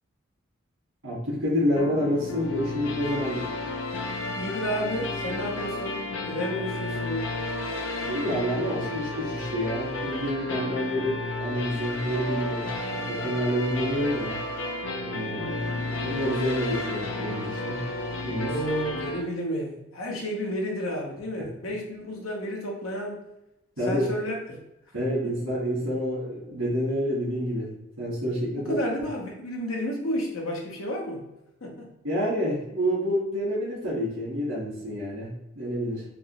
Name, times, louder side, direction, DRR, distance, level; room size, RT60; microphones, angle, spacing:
voice 1, 1.0-3.5 8.0-14.4 15.0-17.9 18.2-18.6 21.4-21.5 23.8-24.1 24.9-27.7 28.0-28.8 32.0-36.0, equal, 85° right, -7 dB, 1.4 m, -28 dB
sound 1, 1.8-19.2, left 2 dB, 65° left, 0.6 m, -32 dB
voice 2, 4.4-7.3 18.4-23.2 23.9-24.6 28.6-31.2 31.6-31.9, equal, 80° left, 0 dB, 0.9 m, -31 dB
3.4 x 2.9 x 3.0 m, 0.91 s
head